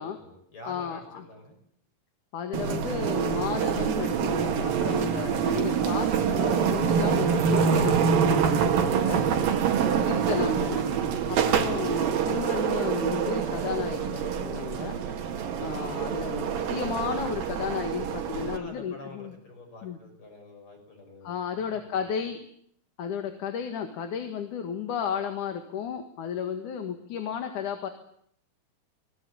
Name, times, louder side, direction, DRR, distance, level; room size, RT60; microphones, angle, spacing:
voice 1, 0.0-1.6 18.3-22.0, left 2 dB, 35° left, 3 dB, 6.9 m, -47 dB
voice 2, 0.6-1.2 2.3-9.2 10.0-10.8 11.3-15.0 15.6-19.3 19.8-20.0 21.2-22.4 23.0-27.9, left 7 dB, 65° left, 7 dB, 3.1 m, -33 dB
sound 1, 2.5-18.6, right 7 dB, 85° right, 3.7 m, -26 dB
25.0 x 19.5 x 8.6 m, 0.67 s
omnidirectional pair, 3.9 m